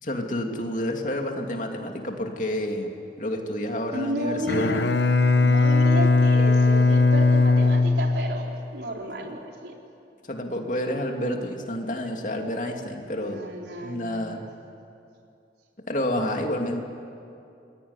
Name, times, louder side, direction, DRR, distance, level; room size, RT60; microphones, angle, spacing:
voice 1, 0.0-4.8 10.3-13.4 13.8-14.5 15.9-16.8, left 1 dB, 45° left, 2 dB, 2.8 m, -29 dB
voice 2, 3.9-4.8 5.4-9.7 13.2-14.5, right 1 dB, 80° right, 0 dB, 4.3 m, -33 dB
Bowed string instrument, 4.4-8.7, left 3 dB, 85° left, 1.1 m, -19 dB
27.5 x 21.0 x 9.8 m, 2.6 s
head